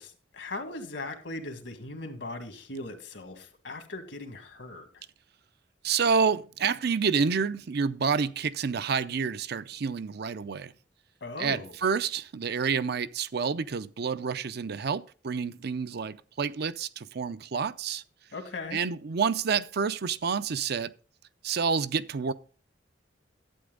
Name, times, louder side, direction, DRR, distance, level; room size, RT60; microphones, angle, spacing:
voice 1, 0.0-5.0 11.2-11.7 18.3-18.8, left 2 dB, 75° left, 2.0 m, -39 dB
voice 2, 5.8-10.7 11.4-18.0 18.7-20.9 21.4-22.3, right 5 dB, 60° right, 0.5 m, -28 dB
11.5 x 8.7 x 3.8 m
head